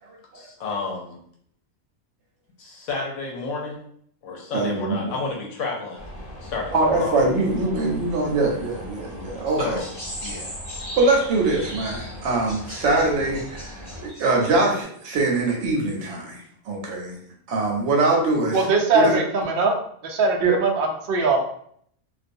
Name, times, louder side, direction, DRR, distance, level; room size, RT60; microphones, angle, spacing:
voice 1, 0.3-1.2 2.6-3.8 4.2-6.0 6.4-7.2 9.5-9.9 10.2-10.6, left 3 dB, 65° left, -2 dB, 0.9 m, -31 dB
voice 2, 4.5-5.1 6.7-9.8 11.0-17.2 17.5-18.6 18.9-19.2 20.4-20.5, right 3 dB, 65° right, 0 dB, 0.8 m, -23 dB
sound 1, 6.0-14.1, left 1 dB, 45° left, 0.4 m, -40 dB
sound 2, 9.8-14.7, equal, 20° left, 1.1 m, -38 dB
voice 3, 18.5-19.7 20.0-21.4, right 3 dB, 90° right, 1 dB, 0.4 m, -21 dB
2.4 x 2.2 x 2.6 m, 0.65 s
omnidirectional pair, 1.5 m